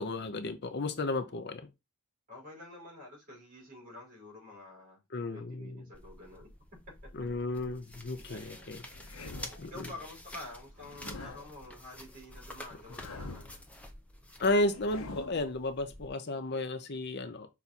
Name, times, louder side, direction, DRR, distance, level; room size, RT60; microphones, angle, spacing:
voice 1, 0.0-1.7 5.1-5.8 7.1-8.8 9.6-9.9 14.4-17.5, left 2 dB, 50° left, 0.7 m, -33 dB
voice 2, 2.3-5.0 5.3-6.5 8.3-8.8 9.7-13.5, left 2 dB, 40° right, 4.4 m, -48 dB
sound 1, 5.9-16.1, left 1 dB, 5° left, 0.9 m, -49 dB
sound 2, 8.9-9.7 10.8-11.6 12.8-13.6 14.6-15.5, left 3 dB, 70° left, 1.0 m, -45 dB
5.9 x 4.2 x 4.2 m
head